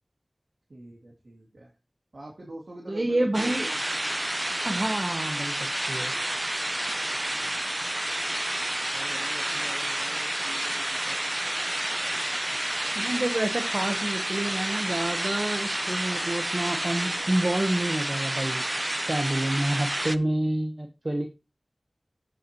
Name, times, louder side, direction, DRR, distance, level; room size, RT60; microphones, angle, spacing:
voice 1, 0.7-1.7 2.1-3.8 7.1-7.6 8.9-11.2, right 1 dB, 80° right, -3 dB, 2.5 m, -45 dB
voice 2, 2.9-3.7 4.6-6.1 10.2-10.3 13.0-18.6 19.0-21.3, right 1 dB, 45° right, 5 dB, 1.0 m, -28 dB
sound 1, 3.3-20.2, right 1 dB, 25° right, 0.5 m, -30 dB
14.0 x 5.4 x 3.0 m, 0.27 s
wide cardioid pair, 55°, 0 cm